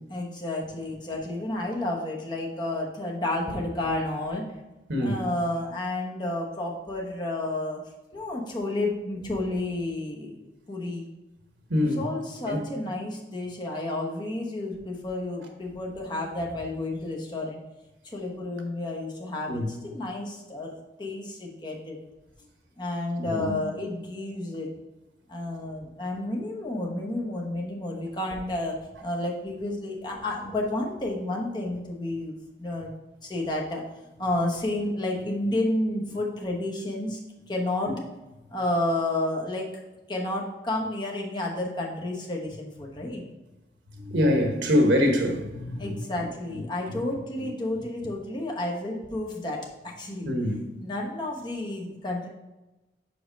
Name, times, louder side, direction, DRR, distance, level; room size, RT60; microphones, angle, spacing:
voice 1, 0.1-4.6 5.0-7.8 8.1-11.1 11.8-17.6 18.0-22.0 22.8-24.7 25.3-32.9 33.2-33.8 34.2-37.2 37.5-38.0 38.5-39.8 40.1-43.2 45.8-50.3 50.8-52.3, left 1 dB, 25° left, 1.0 m, -31 dB
voice 2, 11.7-12.0 12.5-12.6 19.5-19.7 23.2-23.6 37.9-38.0 43.0-43.1 43.9-46.0 46.9-47.0 50.2-50.6, left 1 dB, 80° right, 1.2 m, -24 dB
5.2 x 4.7 x 5.3 m
head